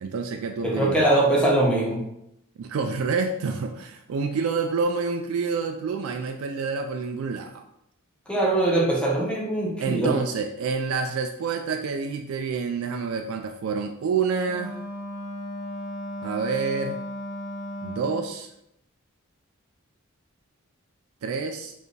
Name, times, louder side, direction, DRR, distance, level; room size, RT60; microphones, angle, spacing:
voice 1, 0.0-1.0 2.6-7.6 9.8-14.8 16.2-17.0 17.8-18.5 21.2-21.7, right 5 dB, 75° right, 4 dB, 0.4 m, -28 dB
voice 2, 0.6-2.0 8.3-10.1, right 1 dB, 5° left, -3 dB, 1.1 m, -22 dB
Wind instrument woodwind instrument, 14.4-18.3, left 1 dB, 35° left, 1.5 m, -35 dB
4.6 x 3.4 x 3.2 m, 0.80 s
head